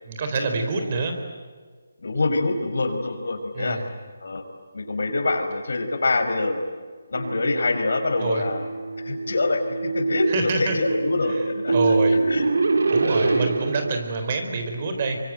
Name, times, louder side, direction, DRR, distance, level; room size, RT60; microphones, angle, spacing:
voice 1, 0.0-1.2 3.5-3.9 8.2-8.4 10.3-10.8 11.3-11.4 11.7-12.2 12.9-15.2, right 3 dB, 35° right, 6 dB, 4.1 m, -26 dB
voice 2, 2.0-3.8 4.2-4.4 4.7-6.6 7.1-8.7 9.0-11.7 12.3-12.4 13.0-13.4, left 2 dB, 70° left, 5 dB, 5.4 m, -25 dB
sound 1, 7.1-14.0, right 3 dB, 75° right, 2.5 m, -25 dB
26.5 x 24.5 x 9.2 m, 1.5 s
hypercardioid pair, 165°, 0 cm